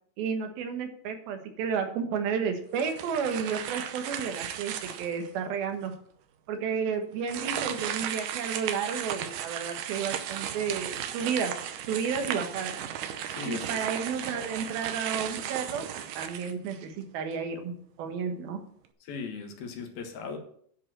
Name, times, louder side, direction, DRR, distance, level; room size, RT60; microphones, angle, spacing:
voice 1, 0.2-5.9 6.5-11.6 11.9-12.7 13.5-15.8 16.2-18.6, right 6 dB, 90° right, 5 dB, 3.1 m, -32 dB
sound 1, 2.7-5.3 5.9-6.0 7.2-17.0, right 10 dB, 75° right, 2.1 m, -35 dB
voice 2, 13.3-13.9 19.0-20.4, left 5 dB, 85° left, 4 dB, 3.3 m, -38 dB
10.5 x 5.1 x 7.4 m, 0.64 s
omnidirectional pair, 4.2 m